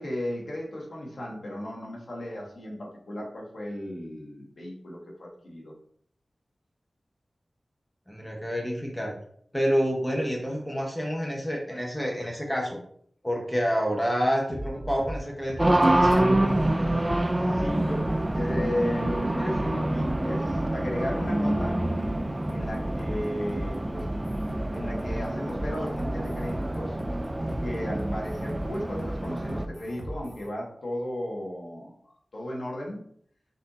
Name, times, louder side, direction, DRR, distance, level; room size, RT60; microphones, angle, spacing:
voice 1, 0.0-5.7 16.8-17.2 17.5-18.1 18.3-21.8 22.5-24.1 24.7-27.0 27.6-31.9 32.3-33.0, left 1 dB, 70° left, -2 dB, 1.3 m, -35 dB
voice 2, 8.1-9.2 9.5-12.8 13.2-16.4, equal, 5° left, -2 dB, 0.8 m, -28 dB
sound 1, 14.5-30.5, equal, 55° left, 0.9 m, -37 dB
Race car auto racing, 15.6-29.7, right 1 dB, 20° right, 0.3 m, -27 dB
Guitar, 15.8-19.0, right 1 dB, 40° right, 0.8 m, -33 dB
4.3 x 2.6 x 4.0 m, 0.62 s
wide cardioid pair, 85°, 0 cm